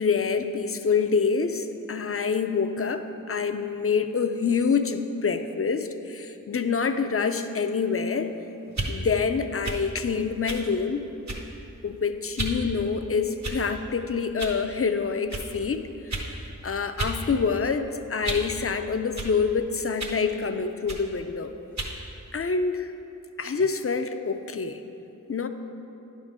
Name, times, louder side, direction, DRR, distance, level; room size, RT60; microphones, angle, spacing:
voice 1, 0.0-8.3 8.9-11.0 11.8-16.1 16.6-21.5 22.3-22.9 23.4-24.8 25.3-25.5, left 5 dB, 45° left, 8 dB, 0.4 m, -26 dB
sound 1, 8.7-8.9 9.6-9.8 10.5-10.7 11.3-11.6 12.4-12.6 13.4-13.8 14.4-14.6 15.3-15.5 16.1-16.3 17.0-17.2 17.5-18.5 19.2-19.3 20.0-20.2 20.9-21.1 21.8-22.0, right 2 dB, 55° right, 0.9 m, -32 dB
9.8 x 3.7 x 6.3 m, 2.9 s
wide cardioid pair, 55°, 33 cm